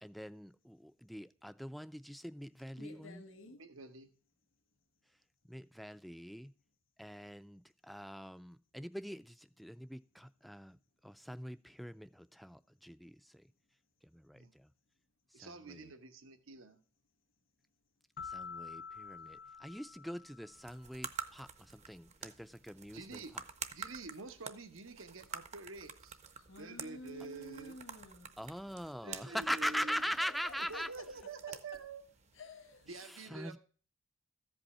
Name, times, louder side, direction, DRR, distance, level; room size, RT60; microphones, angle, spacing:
voice 1, 0.0-3.3 5.5-6.5 7.0-10.8 11.0-13.4 14.0-14.7 15.4-15.9 18.2-23.2 28.4-30.9 33.3-33.6, equal, ahead, 0.4 m, -42 dB
voice 2, 2.8-3.6 26.3-28.3 30.2-31.0 32.3-32.9, left 2 dB, 70° left, 1.5 m, -51 dB
voice 3, 3.6-4.1 14.3-14.5 15.3-16.8 22.9-23.4 23.7-26.2 26.6-27.7 29.0-30.1 30.5-32.0 32.9-33.6, right 4 dB, 85° right, 1.0 m, -48 dB
sound 1, 18.2-20.9, left 6 dB, 50° left, 0.7 m, -48 dB
sound 2, 20.5-33.0, right 7 dB, 35° right, 0.7 m, -49 dB
14.0 x 5.4 x 4.2 m
head